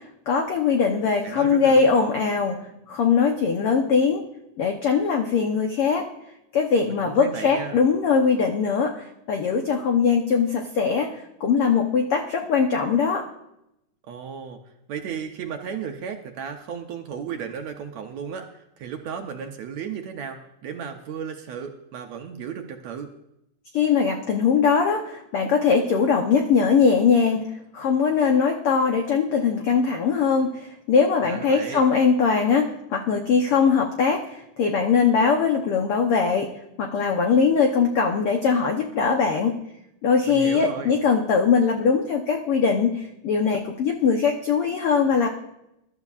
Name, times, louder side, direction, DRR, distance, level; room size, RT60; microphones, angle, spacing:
voice 1, 0.3-2.6 2.9-4.2 4.6-6.1 6.5-11.1 11.4-13.2 23.7-27.4 27.7-36.5 36.8-39.6 40.0-45.3, left 5 dB, 90° left, 3 dB, 1.2 m, -21 dB
voice 2, 1.2-2.0 6.9-7.8 14.1-23.1 31.2-31.9 40.2-41.0, right 7 dB, 70° right, 4 dB, 1.8 m, -35 dB
21.5 x 12.0 x 2.5 m, 0.84 s
omnidirectional pair, 3.9 m